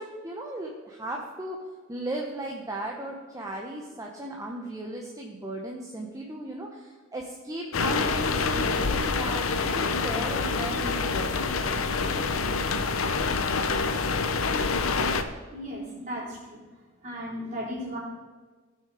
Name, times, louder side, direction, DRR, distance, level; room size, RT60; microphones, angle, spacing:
voice 1, 0.0-1.6 1.9-11.7, right 1 dB, 15° right, 0 dB, 0.9 m, -36 dB
sound 1, 7.7-15.2, left 4 dB, 90° left, 0.8 m, -26 dB
voice 2, 15.5-16.6 17.0-18.0, equal, 35° right, -5 dB, 3.9 m, -35 dB
16.0 x 5.8 x 4.8 m, 1.4 s
head